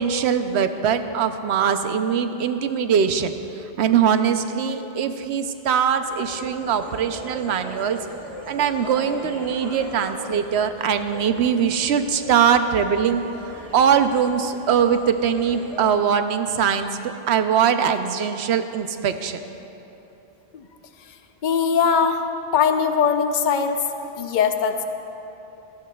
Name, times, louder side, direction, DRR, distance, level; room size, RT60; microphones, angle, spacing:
voice 1, 0.0-3.3 3.8-8.0 8.5-13.2 13.7-19.4, right 7 dB, 90° right, 9 dB, 0.9 m, -21 dB
sound 1, 6.0-15.9, right 1 dB, 70° right, 1.8 m, -40 dB
voice 2, 21.4-22.3 22.5-23.8 24.2-24.8, left 6 dB, 55° left, 7 dB, 0.7 m, -20 dB
17.5 x 14.5 x 2.3 m, 3.0 s
omnidirectional pair, 1.1 m